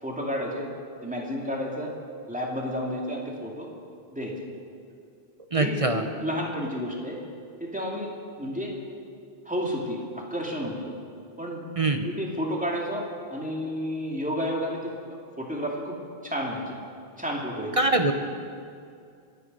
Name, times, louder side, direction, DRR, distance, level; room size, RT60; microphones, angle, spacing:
voice 1, 0.0-0.7 1.0-1.9 2.3-3.7 4.1-4.3 5.6-7.2 7.6-8.1 8.4-8.7 9.5-10.9 11.4-11.6 12.0-15.9 16.2-16.8 17.2-17.7, equal, 5° right, -2 dB, 2.5 m, -31 dB
voice 2, 5.5-6.0 11.8-12.1 17.8-18.1, right 2 dB, 35° right, 5 dB, 0.9 m, -23 dB
27.0 x 9.5 x 5.5 m, 2.3 s
omnidirectional pair, 1.0 m